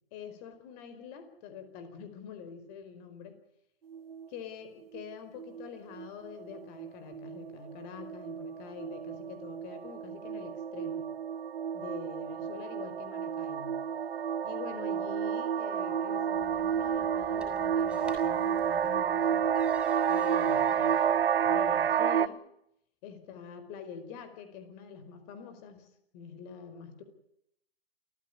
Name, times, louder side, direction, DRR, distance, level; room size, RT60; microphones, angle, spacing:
voice 1, 0.1-3.4 4.3-11.1 11.7-13.8 14.4-19.5 20.1-20.9 21.5-22.4 23.0-27.0, left 7 dB, 40° left, 10 dB, 4.7 m, -45 dB
sound 1, 3.9-4.4 4.9-5.1 5.4-5.7 6.0-22.3, right 8 dB, 70° right, 0.9 m, -30 dB
sound 2, 16.3-21.9, equal, ahead, 7.2 m, -53 dB
28.5 x 15.0 x 9.8 m, 0.79 s
figure-of-eight pair, 110°, 31 cm